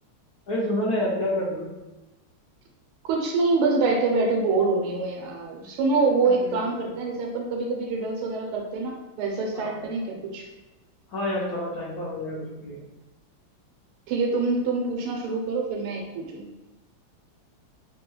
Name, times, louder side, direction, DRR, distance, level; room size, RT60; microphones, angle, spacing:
voice 1, 0.5-1.7 6.3-6.6 9.5-9.8 11.1-12.8, left 1 dB, 80° left, -7 dB, 0.8 m, -28 dB
voice 2, 3.0-10.5 14.1-16.5, right 3 dB, 90° right, 1 dB, 1.5 m, -25 dB
3.4 x 2.2 x 3.0 m, 1.0 s
omnidirectional pair, 2.4 m